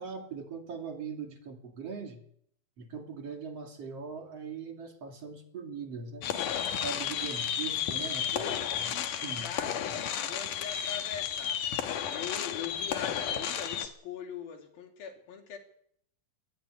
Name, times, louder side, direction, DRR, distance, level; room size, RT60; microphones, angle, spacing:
voice 1, 0.0-2.2 2.8-6.3 6.8-8.5 8.8-8.9 9.2-9.5, right 5 dB, 45° right, 4 dB, 3.4 m, -40 dB
sound 1, 6.2-13.9, left 9 dB, 70° left, 2.9 m, -33 dB
voice 2, 8.2-11.6 12.1-15.6, left 8 dB, 90° left, 3 dB, 4.8 m, -42 dB
22.0 x 11.5 x 10.0 m, 0.68 s
omnidirectional pair, 4.1 m